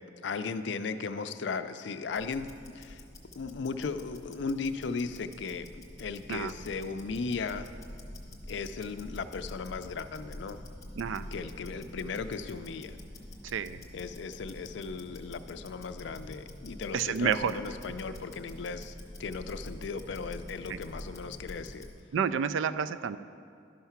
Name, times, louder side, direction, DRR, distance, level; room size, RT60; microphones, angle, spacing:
voice 1, 0.2-2.5 2.7-3.0 3.4-5.7 6.0-7.7 8.5-10.6 11.3-13.0 13.9-18.9 19.2-21.9, left 4 dB, 65° left, 10 dB, 0.4 m, -36 dB
Tick-tock, 2.1-22.0, left 1 dB, 15° left, 1.1 m, -46 dB
voice 2, 11.0-11.3 13.5-13.8 16.9-17.6 22.1-23.2, right 7 dB, 80° right, 14 dB, 0.3 m, -29 dB
11.5 x 5.6 x 5.8 m, 2.3 s
head